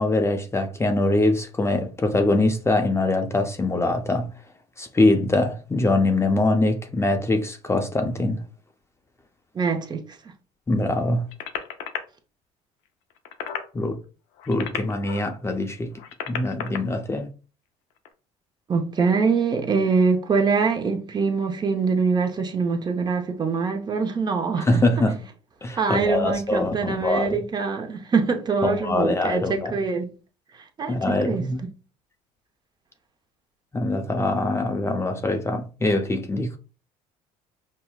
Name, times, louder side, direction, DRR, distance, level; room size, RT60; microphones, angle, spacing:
voice 1, 0.0-4.3 4.8-8.4 10.7-11.3 13.7-14.0 14.5-15.9 16.3-17.3 24.6-25.2 25.6-27.4 28.6-29.7 30.9-31.6 33.7-36.6, left 2 dB, 20° left, 0.5 m, -23 dB
voice 2, 9.5-10.0 18.7-24.8 25.8-30.1 30.8-31.4, right 5 dB, 30° right, 0.6 m, -24 dB
sound 1, 11.3-12.0 13.1-13.7 14.3-15.3 15.9-16.8 18.0-18.1, left 9 dB, 90° left, 0.5 m, -33 dB
5.4 x 2.0 x 2.3 m
supercardioid pair, 90°, 15 cm